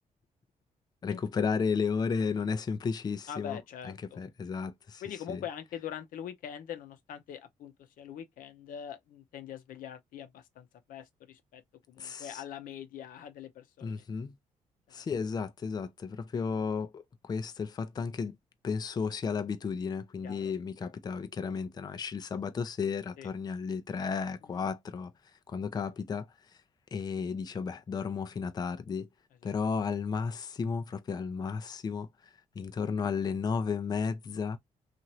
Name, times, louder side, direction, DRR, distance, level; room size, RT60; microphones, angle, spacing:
voice 1, 1.0-3.6 3.8-5.0 5.3-5.4 12.0-12.4 13.8-14.3 14.9-18.4 18.6-25.1 25.5-26.3 26.9-29.1 29.4-34.6, left 5 dB, 30° left, 0.4 m, -33 dB
voice 2, 3.3-4.2 5.0-11.6 11.9-14.0 14.9-15.0 20.2-20.5 23.2-23.3 24.4-24.7, left 9 dB, 85° left, 0.7 m, -43 dB
3.0 x 2.5 x 2.7 m
cardioid pair, 100°, 14 cm